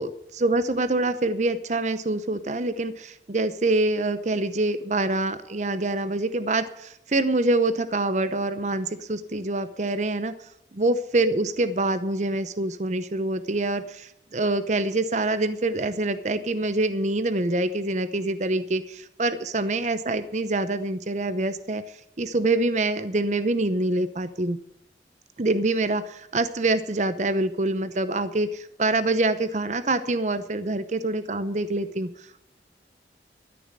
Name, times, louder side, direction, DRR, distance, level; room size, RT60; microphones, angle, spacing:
voice 1, 0.0-10.5 10.8-24.6 25.4-32.4, right 2 dB, 40° right, 12 dB, 0.7 m, -25 dB
13.5 x 6.9 x 8.8 m, 0.75 s
head